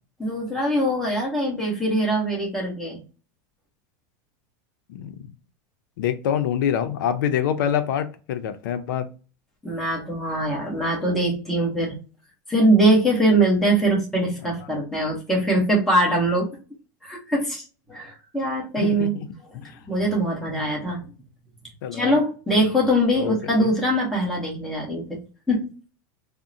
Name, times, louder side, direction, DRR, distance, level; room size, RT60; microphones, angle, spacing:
voice 1, 0.2-3.0 9.6-12.0 12.5-16.6 17.0-19.1 19.9-21.0 21.9-25.2 25.5-25.7, right 1 dB, 5° left, -3 dB, 1.0 m, -22 dB
voice 2, 6.0-9.1 18.8-19.3 19.5-19.7 20.5-20.6 21.8-22.1 23.2-23.7, left 9 dB, 85° left, 10 dB, 0.5 m, -26 dB
3.6 x 2.0 x 2.6 m, 0.34 s
supercardioid pair, 170°, 11 cm